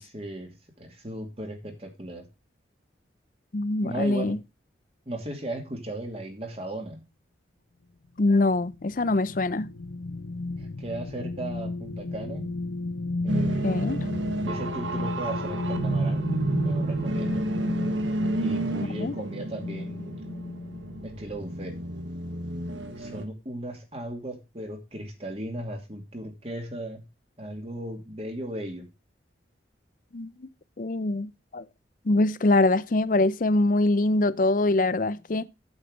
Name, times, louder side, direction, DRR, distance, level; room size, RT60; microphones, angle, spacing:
voice 1, 0.0-2.3 3.8-4.4 5.1-7.0 10.6-12.5 13.2-13.7 14.5-16.3 16.6-17.5 18.4-20.3 21.0-21.8 23.0-27.0 27.4-28.9, right 1 dB, 35° right, 2.5 m, -36 dB
voice 2, 3.5-4.4 8.2-9.7 13.6-14.0 18.9-19.1 30.1-30.5 30.8-31.6 32.1-35.5, left 2 dB, 45° left, 0.6 m, -24 dB
sound 1, 8.2-21.1 21.6-21.7, left 2 dB, 90° left, 0.8 m, -34 dB
sound 2, 13.3-23.2, right 2 dB, 90° right, 1.4 m, -30 dB
8.5 x 8.1 x 5.1 m
head